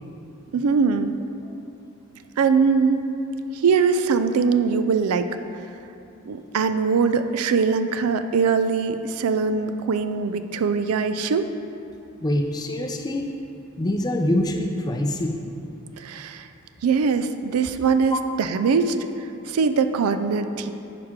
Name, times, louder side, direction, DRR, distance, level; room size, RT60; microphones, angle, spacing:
voice 1, 0.5-1.2 2.4-3.0 3.5-5.3 6.3-11.5 16.0-16.5 16.8-20.7, right 5 dB, 90° right, 10 dB, 0.4 m, -22 dB
voice 2, 12.2-13.3 13.8-15.4 18.1-18.2, left 1 dB, 20° left, 4 dB, 0.4 m, -24 dB
10.5 x 4.8 x 3.7 m, 2.7 s
head